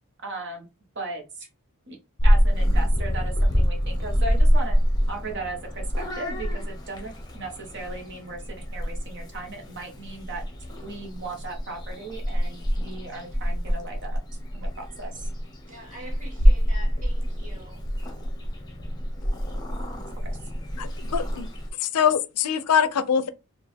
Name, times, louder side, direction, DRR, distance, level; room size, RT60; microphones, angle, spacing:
voice 1, 0.2-0.7 0.9-1.5 1.9-2.0 2.2-4.8 5.1-10.4 10.8-14.2 14.5-15.3 20.2-20.3, right 2 dB, 50° right, 1.1 m, -37 dB
Purr / Meow, 2.2-21.7, equal, 20° left, 0.9 m, -26 dB
voice 2, 15.7-18.1, equal, 35° right, 2.2 m, -45 dB
voice 3, 20.8-21.5 21.8-23.3, left 8 dB, 85° left, 0.5 m, -23 dB
4.4 x 2.4 x 3.4 m
head